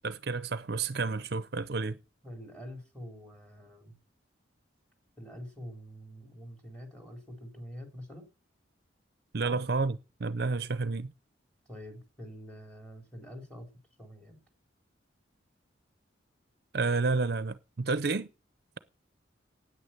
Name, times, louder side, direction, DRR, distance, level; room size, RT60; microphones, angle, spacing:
voice 1, 0.0-2.0 9.3-11.1 16.7-18.3, right 4 dB, 55° right, 0.6 m, -30 dB
voice 2, 2.2-3.9 5.2-8.3 9.4-9.6 11.7-13.7 14.0-14.4, equal, 5° left, 3.9 m, -46 dB
9.7 x 8.9 x 9.0 m
head